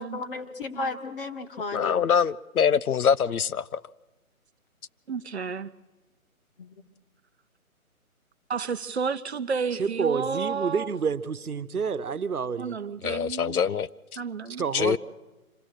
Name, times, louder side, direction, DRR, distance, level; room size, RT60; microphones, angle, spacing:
voice 1, 0.0-2.0 6.6-6.7, left 3 dB, 40° left, 1.5 m, -34 dB
voice 2, 1.7-3.8 13.0-13.9 14.7-15.0, left 7 dB, 75° left, 0.7 m, -24 dB
voice 3, 5.1-5.7 8.5-10.9 12.6-13.6 14.2-14.6, right 5 dB, 50° right, 0.7 m, -31 dB
voice 4, 9.8-12.8 14.6-15.0, right 6 dB, 80° right, 1.1 m, -29 dB
25.5 x 16.0 x 6.5 m
figure-of-eight pair, 155°, 44 cm